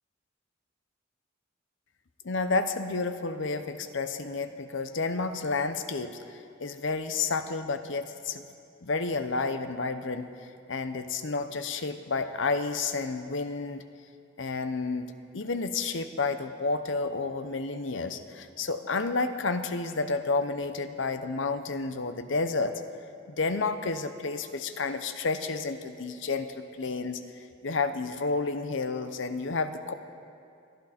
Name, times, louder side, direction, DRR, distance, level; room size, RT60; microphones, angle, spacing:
voice 1, 2.2-8.4 8.8-13.8 14.4-22.7 23.3-27.2 27.6-29.9, left 3 dB, 65° left, 9 dB, 0.8 m, -31 dB
21.0 x 12.5 x 4.3 m, 2.5 s
head